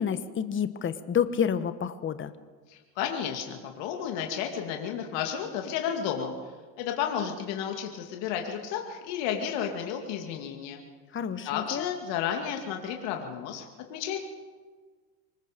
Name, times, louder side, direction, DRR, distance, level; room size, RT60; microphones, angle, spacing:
voice 1, 0.0-2.3 11.1-11.9, left 8 dB, 25° left, 12 dB, 1.2 m, -29 dB
voice 2, 2.7-6.3 6.8-10.8 11.4-14.2, left 8 dB, 65° left, 3 dB, 2.5 m, -32 dB
25.0 x 20.5 x 5.2 m, 1.4 s
supercardioid pair, 100°, 48 cm